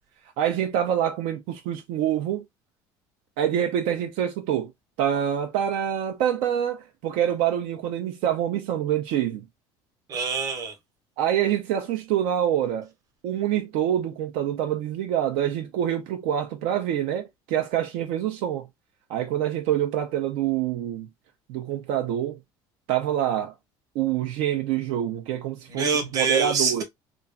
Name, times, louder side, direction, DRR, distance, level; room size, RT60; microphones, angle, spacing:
voice 1, 0.4-2.4 3.4-4.7 5.0-9.4 11.2-12.9 13.2-18.7 19.1-21.1 21.5-22.4 22.9-23.5 23.9-26.8, right 10 dB, 75° right, 0.6 m, -26 dB
voice 2, 10.1-10.7 25.7-26.8, right 5 dB, 35° right, 1.0 m, -25 dB
3.0 x 2.4 x 2.4 m
cardioid pair, 145°, 10 cm